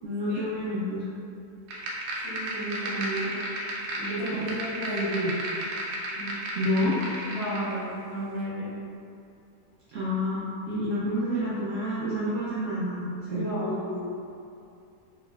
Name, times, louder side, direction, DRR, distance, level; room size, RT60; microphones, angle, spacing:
voice 1, 0.0-1.0 4.3-4.5 6.5-7.0 9.9-10.4 10.7-13.5, left 1 dB, 70° right, -8 dB, 0.8 m, -28 dB
sound 1, 1.7-7.7, right 1 dB, 85° right, 1.2 m, -34 dB
voice 2, 2.2-3.4 4.0-5.4 6.1-6.3 7.3-8.7 13.3-14.1, right 1 dB, 65° left, -10 dB, 1.8 m, -32 dB
4.3 x 2.9 x 2.3 m, 2.6 s
omnidirectional pair, 1.7 m